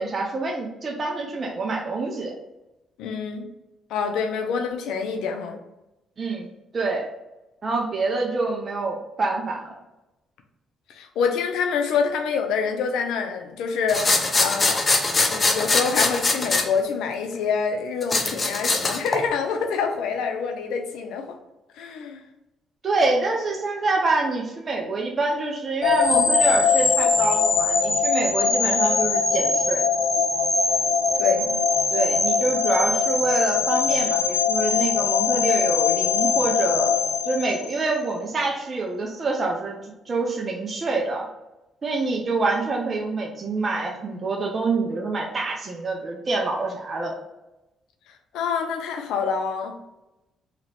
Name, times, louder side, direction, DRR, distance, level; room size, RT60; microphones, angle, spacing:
voice 1, 0.0-2.3 6.2-6.5 6.7-7.1 7.6-9.7 22.8-29.9 31.9-37.0 37.2-41.3 41.8-47.2, right 3 dB, 40° right, 0 dB, 0.7 m, -26 dB
voice 2, 3.0-3.5 3.9-5.6 10.9-14.9 15.2-21.3 21.7-22.2 31.2-31.5 48.3-49.8, left 6 dB, 90° left, 5 dB, 0.6 m, -26 dB
sound 1, 13.9-16.6 18.0-19.2, left 3 dB, 30° left, 0.7 m, -22 dB
sound 2, 25.8-38.0, left 5 dB, 70° left, 1.1 m, -21 dB
3.0 x 2.9 x 4.1 m, 0.96 s
cardioid pair, 90°, 0 cm